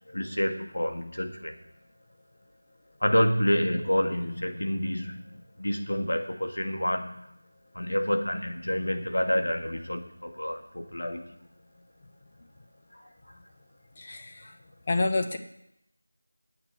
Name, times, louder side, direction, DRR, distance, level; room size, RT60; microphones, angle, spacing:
voice 1, 0.1-1.5 3.0-7.2 7.7-11.2 12.9-13.0, equal, 70° left, 3 dB, 2.1 m, -28 dB
voice 2, 14.0-14.4 14.9-15.4, left 2 dB, 30° left, 5 dB, 1.3 m, -28 dB
10.0 x 8.8 x 6.9 m, 0.80 s
figure-of-eight pair, 170°, 0 cm